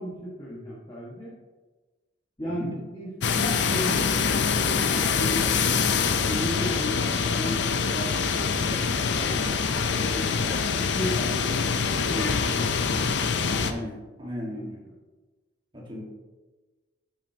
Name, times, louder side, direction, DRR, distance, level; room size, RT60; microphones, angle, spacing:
voice 1, 0.0-1.3 2.4-5.8 6.2-7.6 7.8-9.7 10.0-10.4 10.8-12.9 14.5-14.9, equal, 20° left, -7 dB, 1.5 m, -35 dB
sound 1, 3.2-13.7, left 5 dB, 55° left, 0.5 m, -25 dB
voice 2, 13.6-14.8 15.7-16.0, equal, 25° right, -2 dB, 1.7 m, -36 dB
9.2 x 7.7 x 2.9 m, 1.2 s
head